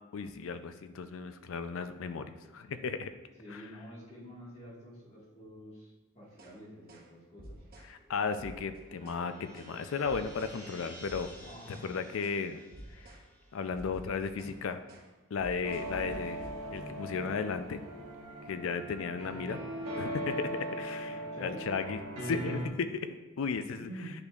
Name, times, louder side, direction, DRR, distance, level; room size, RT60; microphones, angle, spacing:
voice 1, 0.1-3.1 3.5-3.6 7.8-11.3 11.7-12.6 12.9-13.1 13.5-14.8 15.3-16.4 16.7-17.8 18.5-19.6 20.0-23.9, left 5 dB, 65° left, 10 dB, 0.4 m, -35 dB
voice 2, 3.4-7.6 11.4-11.8 21.1-21.7 23.7-24.1, equal, 30° left, -6 dB, 1.6 m, -48 dB
sound 1, 6.3-6.6 6.9-7.1 7.4-7.9 8.3-9.2 9.6-9.8 10.1-10.6 11.0-11.9 12.2-12.4 12.7-13.3 13.5-14.6 14.9-15.1 15.4-16.9, right 1 dB, 45° right, 0.9 m, -50 dB
sound 2, 7.9-14.4, equal, 5° left, 1.4 m, -53 dB
sound 3, 15.6-22.7, right 1 dB, 75° right, 1.2 m, -39 dB
9.7 x 4.2 x 2.4 m, 1.1 s
head